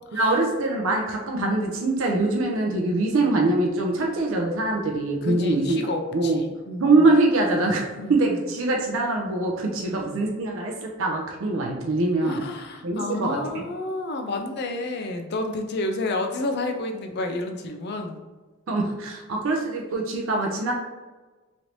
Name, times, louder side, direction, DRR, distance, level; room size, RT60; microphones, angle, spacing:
voice 1, 0.1-5.8 6.1-6.4 6.8-12.4 12.8-13.4 18.7-20.7, right 2 dB, 65° right, 0 dB, 0.5 m, -23 dB
voice 2, 5.2-7.1 7.9-8.4 9.8-10.0 12.2-18.2, left 2 dB, 50° left, 5 dB, 0.4 m, -30 dB
3.1 x 2.6 x 2.9 m, 1.3 s
head